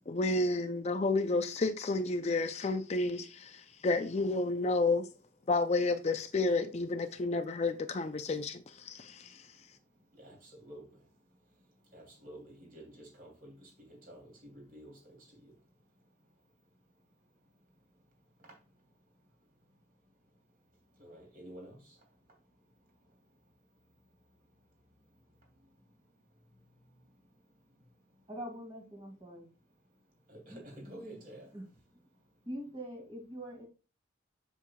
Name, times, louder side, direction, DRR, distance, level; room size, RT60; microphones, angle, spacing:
voice 1, 0.1-5.1 5.5-9.4, left 3 dB, 35° left, 0.4 m, -31 dB
voice 2, 10.2-11.0 11.9-15.5 21.0-21.8 30.3-31.5, right 1 dB, 45° right, 2.9 m, -50 dB
voice 3, 28.3-29.5 30.5-30.6 31.5-31.7 32.5-33.7, equal, 25° right, 2.0 m, -43 dB
7.3 x 6.7 x 2.3 m
head